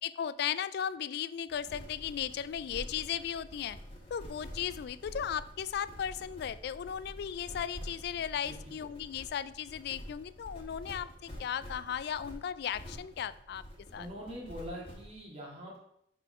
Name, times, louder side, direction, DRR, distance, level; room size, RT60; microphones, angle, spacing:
voice 1, 0.0-3.8 4.1-13.6 13.9-14.1, left 8 dB, 60° left, 16 dB, 0.3 m, -36 dB
sound 1, 1.5-15.1, equal, 30° left, 1.4 m, -47 dB
voice 2, 8.4-8.8 14.0-15.8, equal, 35° right, -2 dB, 1.9 m, -43 dB
6.6 x 3.8 x 4.9 m, 0.74 s
head